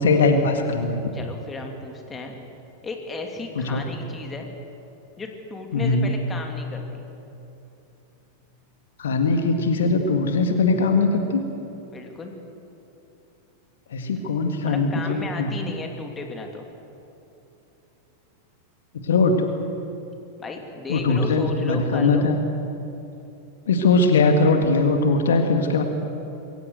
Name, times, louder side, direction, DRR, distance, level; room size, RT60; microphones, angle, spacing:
voice 1, 0.0-1.0 3.6-3.8 5.7-6.1 9.0-11.4 13.9-15.6 19.0-19.4 20.9-22.4 23.7-25.8, left 3 dB, 65° left, 5 dB, 1.9 m, -20 dB
voice 2, 1.1-2.4 2.8-4.5 5.2-7.0 11.9-12.3 14.6-16.7 20.4-22.3, left 3 dB, 20° left, 3 dB, 3.0 m, -34 dB
22.5 x 17.5 x 8.0 m, 3.0 s
figure-of-eight pair, 90°, 0 cm